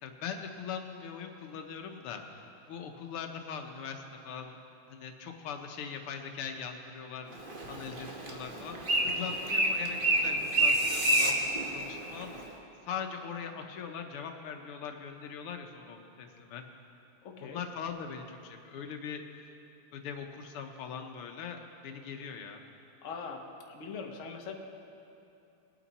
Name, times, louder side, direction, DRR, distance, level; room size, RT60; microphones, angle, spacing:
voice 1, 0.0-4.6 4.9-7.4 7.7-12.4 12.8-16.6 17.4-19.2 19.9-22.6, left 6 dB, 85° left, 4 dB, 1.8 m, -41 dB
Bird, 7.3-12.5, right 1 dB, 30° right, 1.2 m, -29 dB
sound 1, 10.3-11.3, right 2 dB, 60° right, 0.4 m, -36 dB
voice 2, 17.2-17.6 23.0-24.5, left 5 dB, 45° left, 2 dB, 1.1 m, -42 dB
21.0 x 9.0 x 4.1 m, 2.7 s
omnidirectional pair, 2.4 m